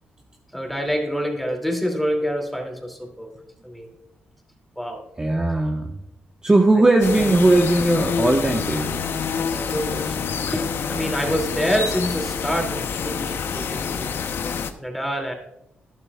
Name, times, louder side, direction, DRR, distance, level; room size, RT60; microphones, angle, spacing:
voice 1, 0.5-3.3 3.6-3.9 4.8-5.0 9.5-10.1 10.5-14.1 14.8-15.3, equal, ahead, 2 dB, 2.6 m, -26 dB
voice 2, 5.2-6.0 6.4-9.0, right 2 dB, 20° right, 2 dB, 1.1 m, -18 dB
sound 1, 7.0-14.7, left 6 dB, 65° left, 0.8 m, -27 dB
12.5 x 11.0 x 2.4 m, 0.80 s
cardioid pair, 65°, 4 cm